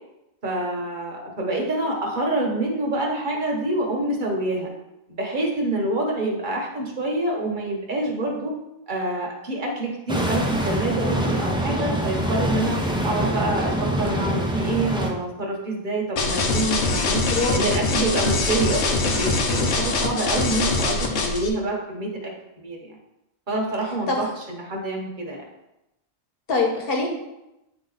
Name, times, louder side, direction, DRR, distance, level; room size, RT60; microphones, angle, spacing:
voice 1, 0.4-4.7 5.2-8.5 8.9-17.2 17.5-23.0 23.5-25.4, right 2 dB, 45° right, -1 dB, 1.3 m, -27 dB
sound 1, 10.1-15.1, equal, 5° right, 0.6 m, -24 dB
sound 2, 16.2-21.5, left 3 dB, 80° left, 1.1 m, -23 dB
voice 2, 17.3-17.6 24.1-24.2 26.5-27.1, left 3 dB, 55° left, 0 dB, 1.4 m, -23 dB
8.9 x 3.0 x 4.0 m, 0.92 s
omnidirectional pair, 1.2 m